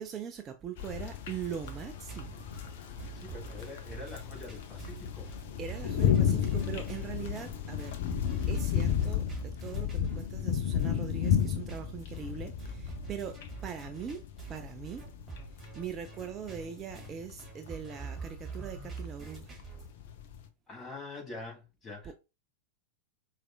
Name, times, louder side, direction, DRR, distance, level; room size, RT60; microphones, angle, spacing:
voice 1, 0.0-2.4 5.6-8.0 8.4-14.2 14.5-15.1 15.8-19.5 22.0-22.1, right 8 dB, 25° right, 0.4 m, -41 dB
sound 1, 0.8-20.5, left 9 dB, 55° left, 0.5 m, -33 dB
sound 2, 1.3-19.9, right 6 dB, 10° right, 1.7 m, -46 dB
voice 2, 3.1-5.3 20.7-22.1, left 3 dB, 20° left, 1.5 m, -45 dB
4.7 x 2.4 x 2.3 m
figure-of-eight pair, 90°, 0 cm